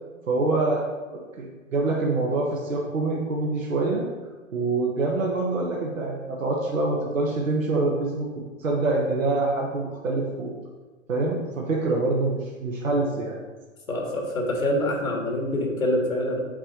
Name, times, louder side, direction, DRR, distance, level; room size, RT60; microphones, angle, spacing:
voice 1, 0.3-0.8 1.1-4.0 4.5-8.3 8.6-10.5 11.1-13.4, right 2 dB, 70° right, -3 dB, 1.2 m, -25 dB
voice 2, 13.9-16.4, left 1 dB, 85° left, 0 dB, 1.9 m, -25 dB
8.7 x 4.3 x 3.0 m, 1.3 s
figure-of-eight pair, 105°, 40 cm